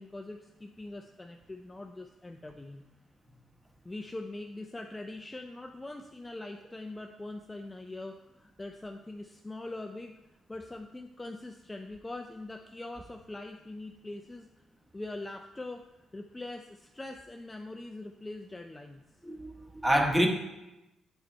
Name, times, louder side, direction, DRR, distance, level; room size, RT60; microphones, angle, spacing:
voice 1, 0.0-2.8 3.8-10.1 10.5-14.6 14.9-15.9 16.1-19.0, left 2 dB, 15° left, 5 dB, 0.4 m, -42 dB
voice 2, 19.2-20.3, equal, 5° right, 3 dB, 1.0 m, -26 dB
7.9 x 4.0 x 4.3 m, 0.97 s
cardioid pair, 90°, 0 cm